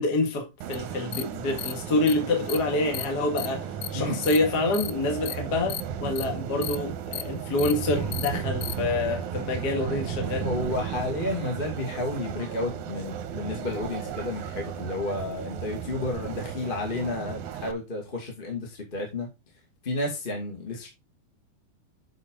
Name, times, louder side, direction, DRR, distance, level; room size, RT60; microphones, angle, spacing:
voice 1, 0.0-3.6 3.9-10.5, left 2 dB, 35° left, 2.0 m, -27 dB
sound 1, 0.6-17.7, right 8 dB, 70° right, 2.1 m, -34 dB
sound 2, 0.7-0.8 1.1-1.2 1.6-1.7 2.1-2.2 2.5-2.6 2.9-3.1 3.4-3.5 3.8-3.9 4.2-4.4 4.7-4.9 5.3-5.4 5.7-5.8 6.2-6.3 6.6-6.8 7.1-7.2 7.6-7.7 8.1-8.3 8.6-8.7, left 15 dB, 80° left, 2.2 m, -33 dB
voice 2, 10.4-19.3 19.8-20.9, left 2 dB, 20° left, 1.7 m, -31 dB
8.3 x 6.1 x 3.8 m
omnidirectional pair, 4.2 m